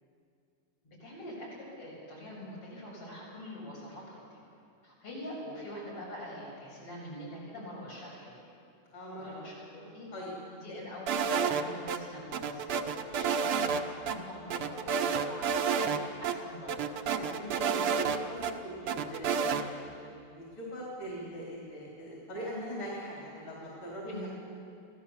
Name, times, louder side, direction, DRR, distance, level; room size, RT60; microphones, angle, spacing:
voice 1, 0.8-4.4 4.8-8.3 9.2-10.1 10.6-12.6 13.2-16.9 24.1-24.3, equal, 85° left, -5 dB, 8.3 m, -44 dB
voice 2, 8.9-9.4 9.6-10.4 17.1-24.3, equal, 60° left, -4 dB, 4.4 m, -42 dB
sound 1, 11.1-12.0 12.3-13.8 14.1-14.2 14.5-16.3 16.7-18.5 18.9-19.6, right 6 dB, 75° right, 1.9 m, -29 dB
25.5 x 16.5 x 7.1 m, 2.4 s
omnidirectional pair, 2.4 m